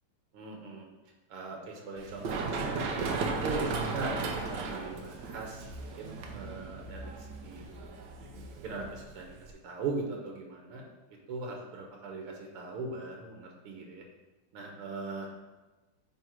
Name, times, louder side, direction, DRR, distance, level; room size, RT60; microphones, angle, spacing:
voice 1, 0.3-0.9 1.3-2.9 3.4-7.7 8.6-9.3 9.6-10.8 11.3-14.0 14.5-15.3, right 3 dB, 85° right, 1 dB, 2.0 m, -39 dB
Run, 2.0-9.5, right 4 dB, 65° right, 1.3 m, -36 dB
8.8 x 3.5 x 4.5 m, 1.1 s
omnidirectional pair, 2.4 m